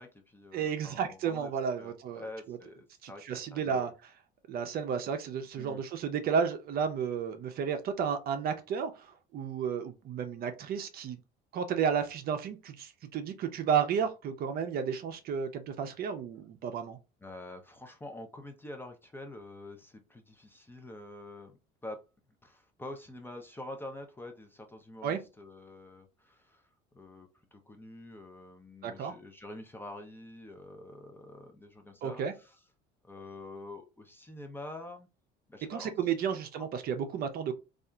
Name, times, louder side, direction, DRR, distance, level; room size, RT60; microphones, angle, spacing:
voice 1, 0.0-1.5 1.8-3.9 5.6-5.8 17.2-22.0 22.4-32.6 33.0-35.1 35.5-35.9 36.3-36.7, left 1 dB, 10° left, 0.4 m, -46 dB
voice 2, 0.5-2.6 3.0-3.9 4.5-11.2 11.5-17.0 25.0-25.2 28.8-29.1 32.0-32.3 35.7-37.5, right 7 dB, 50° right, 0.5 m, -32 dB
2.7 x 2.4 x 2.2 m
cardioid pair, 105°, 20 cm